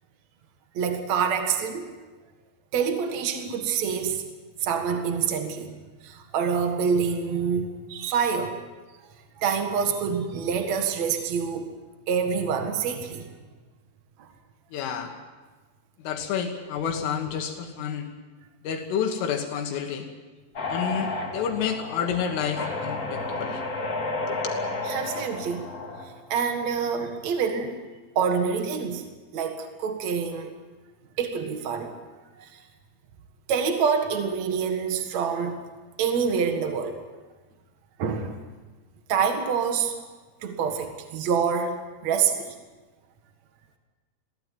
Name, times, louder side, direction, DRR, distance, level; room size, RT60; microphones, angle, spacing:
voice 1, 0.7-1.9 2.7-4.2 4.6-5.7 6.0-8.6 9.4-11.7 12.1-13.4 14.2-14.3 24.8-25.7 26.3-27.8 28.2-29.0 29.3-30.6 31.2-31.9 32.4-32.6 33.5-35.6 36.0-37.0 38.0-38.4 39.1-40.0 40.4-42.5, right 6 dB, 70° right, 5 dB, 1.6 m, -26 dB
voice 2, 14.7-15.1 16.0-18.1 18.6-20.1 20.7-23.6 24.3-24.6, left 7 dB, 75° left, 4 dB, 4.1 m, -29 dB
sound 1, 20.5-26.1, left 2 dB, 45° left, 1.2 m, -32 dB
22.0 x 17.0 x 9.2 m, 1.3 s
omnidirectional pair, 6.0 m